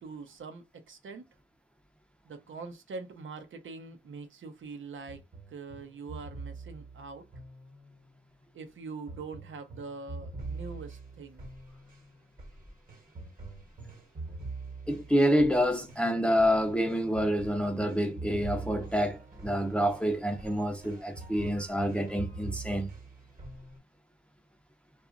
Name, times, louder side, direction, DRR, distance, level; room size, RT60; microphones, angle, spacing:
voice 1, 0.0-1.3 2.2-7.3 8.5-11.5, right 4 dB, 75° right, 0.7 m, -43 dB
sound 1, 5.1-8.2 9.1-23.8, right 3 dB, 45° right, 1.1 m, -44 dB
voice 2, 14.9-22.9, equal, 5° left, 0.5 m, -27 dB
2.9 x 2.3 x 2.5 m
cardioid pair, 70°, 21 cm